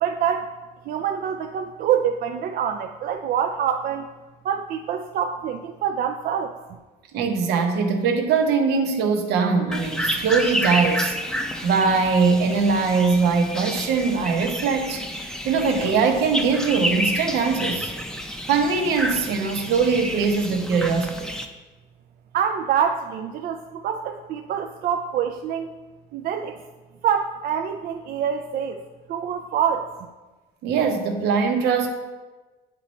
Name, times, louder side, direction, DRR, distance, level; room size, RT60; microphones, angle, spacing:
voice 1, 0.0-0.5 0.9-4.1 4.4-6.5 22.3-25.7 26.1-26.6 27.0-28.8 29.1-29.9, right 8 dB, 60° right, 5 dB, 0.4 m, -25 dB
voice 2, 7.1-11.1 11.6-15.0 15.4-17.9 18.5-21.3 30.6-31.9, right 5 dB, 80° right, 5 dB, 0.9 m, -21 dB
sound 1, 9.7-21.5, equal, 5° left, 0.5 m, -30 dB
8.8 x 3.1 x 4.1 m, 1.2 s
cardioid pair, 110°, 17 cm